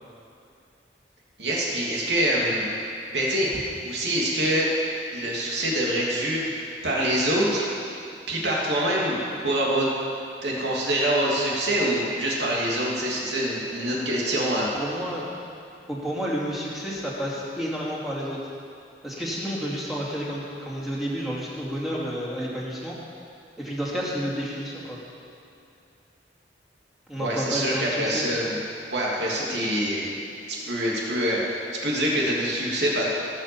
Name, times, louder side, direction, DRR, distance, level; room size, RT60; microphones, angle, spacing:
voice 1, 1.4-2.7 3.1-3.5 3.8-4.7 5.1-7.6 8.3-9.2 9.4-9.9 10.4-14.7 27.1-28.6 28.9-30.1 30.5-33.1, right 1 dB, 75° right, -4 dB, 3.0 m, -25 dB
voice 2, 14.7-15.3 15.9-18.4 19.0-23.0 23.6-25.0 27.1-28.2, equal, ahead, -7 dB, 2.6 m, -30 dB
18.0 x 6.5 x 7.2 m, 2.5 s
head